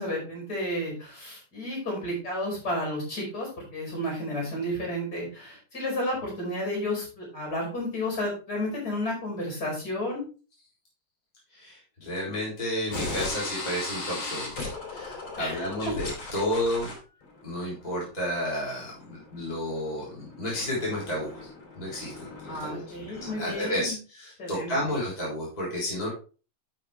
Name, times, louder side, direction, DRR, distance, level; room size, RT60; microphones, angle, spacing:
voice 1, 0.0-10.2 15.4-15.7 22.5-24.0 24.4-24.7, left 1 dB, 45° left, -1 dB, 5.6 m, -32 dB
voice 2, 11.5-16.9 17.4-21.5 21.7-22.8 23.4-26.1, left 1 dB, 20° left, -6 dB, 3.8 m, -31 dB
sound 1, 12.9-23.5, left 3 dB, 75° left, 3.6 m, -39 dB
12.0 x 5.9 x 3.3 m, 0.35 s
omnidirectional pair, 2.3 m